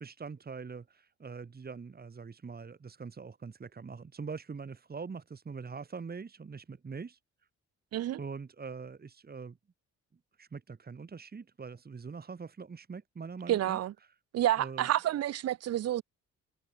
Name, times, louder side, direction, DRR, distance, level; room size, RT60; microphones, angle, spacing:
voice 1, 0.0-7.2 8.2-9.6 10.4-14.1 14.6-14.9, right 5 dB, 30° right, 2.6 m, -43 dB
voice 2, 13.5-13.9 14.3-16.0, right 12 dB, 55° right, 0.7 m, -29 dB
cardioid pair, 90°, 30 cm